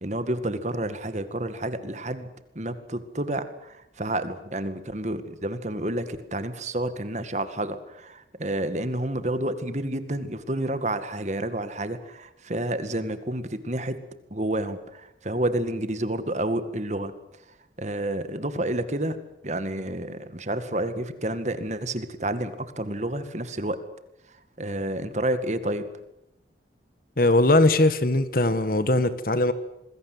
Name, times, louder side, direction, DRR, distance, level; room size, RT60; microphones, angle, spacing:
voice 1, 0.0-2.3 2.6-14.0 14.3-17.1 17.8-19.2 19.4-23.8 24.6-25.9, right 1 dB, 40° right, 11 dB, 2.1 m, -29 dB
voice 2, 27.2-29.5, left 2 dB, 50° left, 13 dB, 1.8 m, -20 dB
27.0 x 21.5 x 8.1 m, 0.87 s
head